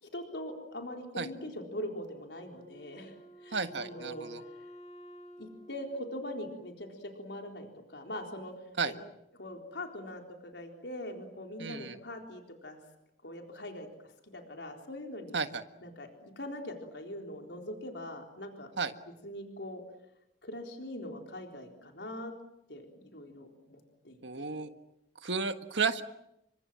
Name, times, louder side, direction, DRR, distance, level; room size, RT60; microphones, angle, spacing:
voice 1, 0.0-4.3 4.6-4.7 5.4-8.5 8.8-9.0 9.4-12.8 13.2-15.4 15.8-18.7 19.2-19.8 20.4-22.3 22.7-23.8 24.0-24.6, left 1 dB, 75° left, 3 dB, 4.0 m, -42 dB
Wind instrument woodwind instrument, 2.5-7.0, equal, 40° left, 3.3 m, -52 dB
voice 2, 3.5-4.4 8.8-8.9 11.6-12.0 15.3-15.6 18.8-18.9 24.2-24.7 25.2-26.0, right 5 dB, 85° right, 9 dB, 1.7 m, -32 dB
29.5 x 25.0 x 7.6 m, 0.83 s
head